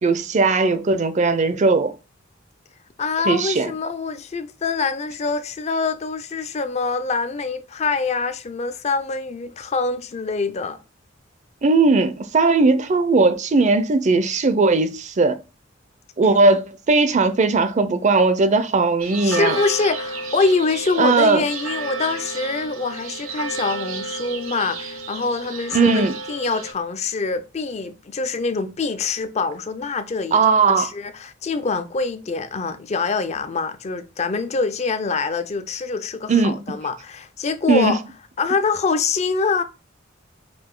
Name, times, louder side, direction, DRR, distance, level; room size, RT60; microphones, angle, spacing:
voice 1, 0.0-1.9 3.3-3.7 11.6-15.4 16.2-19.6 21.0-21.4 25.7-26.1 30.3-30.9 36.3-36.6 37.7-38.0, right 3 dB, 35° right, 0.5 m, -18 dB
voice 2, 3.0-10.8 19.2-38.0 38.4-39.6, left 4 dB, 35° left, 0.4 m, -25 dB
sound 1, 19.0-26.7, right 3 dB, 85° right, 0.9 m, -31 dB
5.0 x 2.6 x 3.7 m
head